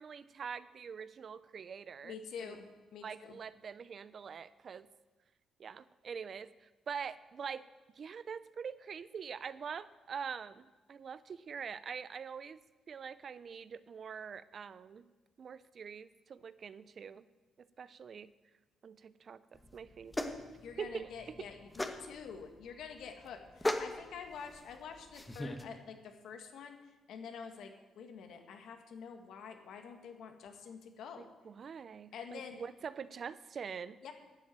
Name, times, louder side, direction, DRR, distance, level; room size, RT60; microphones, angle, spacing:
voice 1, 0.0-2.6 3.0-4.9 5.6-7.7 8.0-12.6 12.9-15.1 15.4-17.2 17.6-18.3 18.8-20.4 20.8-21.5 31.4-34.0, right 6 dB, 50° right, 16 dB, 0.5 m, -44 dB
voice 2, 2.0-2.7 2.9-3.4 20.6-26.8 27.1-31.3 32.1-32.5 34.0-34.1, left 6 dB, 75° left, 5 dB, 1.7 m, -47 dB
sound 1, 19.5-25.6, left 1 dB, 10° left, 1.2 m, -40 dB
11.5 x 7.4 x 9.0 m, 1.2 s
cardioid pair, 90°, 0 cm